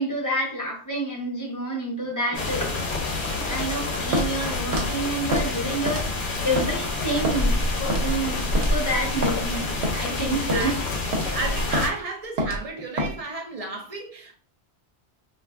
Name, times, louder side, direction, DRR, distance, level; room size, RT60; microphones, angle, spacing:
voice 1, 0.0-2.8 3.4-10.8, right 1 dB, 25° left, 0.6 m, -29 dB
sound 1, 2.3-11.9, left 2 dB, 55° left, 0.7 m, -27 dB
voice 2, 3.4-4.0 10.2-10.7 11.2-14.4, right 3 dB, 45° right, 0.5 m, -33 dB
Walk footsteps, 4.1-4.3 4.7-4.9 5.3-5.5 5.9-6.2 6.6-6.7 7.2-7.4 7.9-8.1 8.6-8.8 9.2-9.4 9.8-10.0 10.5-10.7 11.1-11.3 11.7-11.9 12.4-12.6 13.0-13.1, equal, 80° right, 1.0 m, -26 dB
3.2 x 2.4 x 2.3 m
omnidirectional pair, 1.1 m